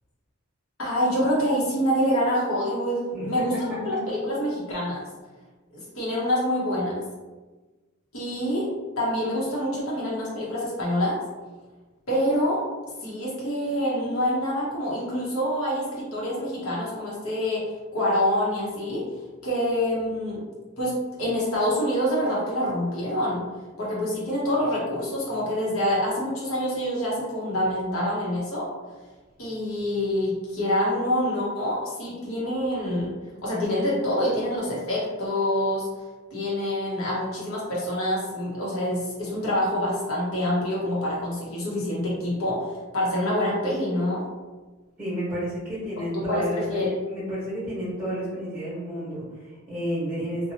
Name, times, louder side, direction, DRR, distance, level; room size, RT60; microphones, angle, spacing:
voice 1, 0.8-5.0 5.7-7.0 8.1-8.7 9.0-11.2 12.1-12.6 13.0-17.6 17.9-19.0 19.4-20.4 20.8-23.4 23.8-28.7 29.4-33.1 33.4-35.9 36.3-44.2 46.1-46.9, equal, 80° left, -6 dB, 0.9 m, -26 dB
voice 2, 45.0-50.5, equal, 5° right, -13 dB, 1.2 m, -31 dB
2.8 x 2.2 x 2.8 m, 1.3 s
head